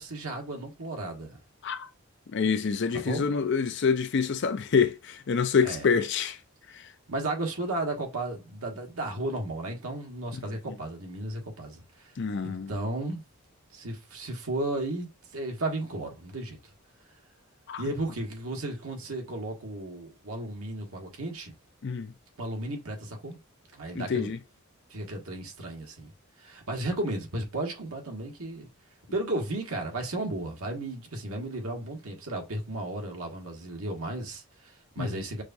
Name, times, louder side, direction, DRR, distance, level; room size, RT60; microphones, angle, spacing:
voice 1, 0.0-1.4 2.9-3.2 5.6-5.9 7.1-12.1 12.4-13.2 13.7-16.7 17.8-21.5 22.4-23.4 23.7-24.3 24.9-26.1 26.4-28.7 29.1-35.4, right 2 dB, 75° right, 1.3 m, -34 dB
voice 2, 2.3-6.4 6.7-6.8 10.3-10.4 12.2-12.7 17.7-17.8 21.8-22.1 23.9-24.4 35.0-35.2, left 5 dB, 55° left, 0.5 m, -27 dB
6.2 x 2.3 x 2.6 m
head